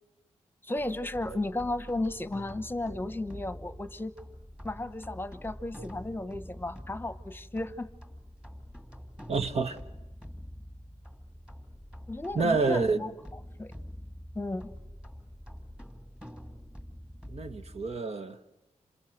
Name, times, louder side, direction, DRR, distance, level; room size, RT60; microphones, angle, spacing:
voice 1, 0.6-4.1 4.6-7.9 12.1-13.1 13.6-13.7 14.3-14.7, left 2 dB, 15° left, 1.1 m, -34 dB
sound 1, 0.8-18.0, equal, 5° right, 2.2 m, -46 dB
voice 2, 9.3-9.8 12.3-13.0 17.3-18.4, right 4 dB, 55° right, 1.3 m, -28 dB
27.0 x 27.0 x 7.9 m
wide cardioid pair, 85°, 13 cm